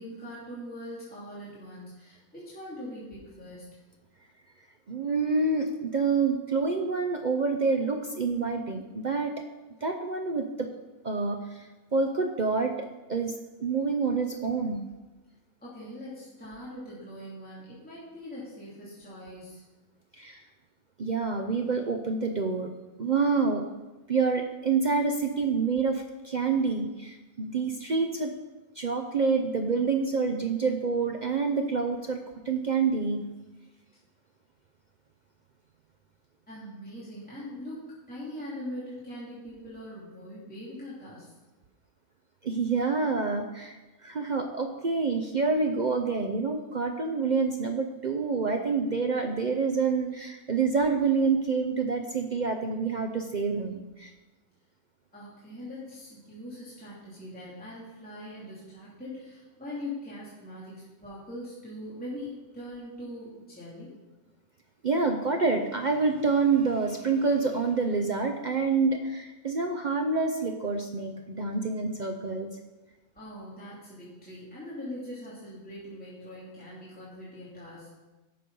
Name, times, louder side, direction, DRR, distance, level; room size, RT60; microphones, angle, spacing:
voice 1, 0.0-3.8 15.6-19.6 36.5-41.3 55.1-63.9 73.1-77.9, left 1 dB, 5° left, -9 dB, 2.6 m, -42 dB
voice 2, 4.9-9.4 9.8-10.7 11.0-11.7 11.9-13.3 13.6-14.8 20.1-20.4 21.0-22.7 23.0-23.6 24.1-28.3 28.8-33.2 42.4-54.1 64.8-72.5, right 4 dB, 55° right, 4 dB, 0.5 m, -27 dB
11.0 x 6.8 x 5.4 m, 1.1 s
omnidirectional pair, 1.6 m